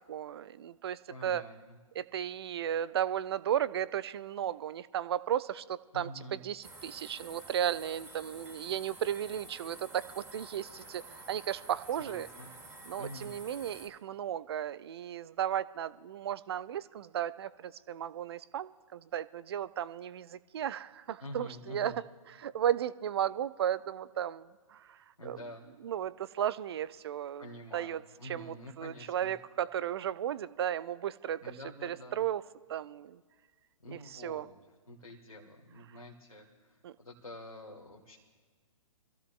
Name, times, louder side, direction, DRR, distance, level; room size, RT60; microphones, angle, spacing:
voice 1, 0.1-1.4 1.9-11.0 11.3-12.3 12.9-25.0 25.2-25.4 25.8-31.4 31.8-32.4 32.7-33.2 33.9-34.5 36.8-36.9, right 10 dB, 45° right, 17 dB, 0.5 m, -35 dB
voice 2, 1.1-1.8 5.9-6.4 12.1-12.5 12.9-13.3 21.2-22.0 25.2-25.7 27.4-29.3 31.4-32.2 33.8-34.5 34.9-38.2, left 1 dB, 90° left, -1 dB, 1.6 m, -47 dB
sound 1, 6.6-13.9, right 2 dB, 10° right, 1.6 m, -50 dB
24.5 x 15.0 x 2.4 m, 1.5 s
figure-of-eight pair, 120°, 18 cm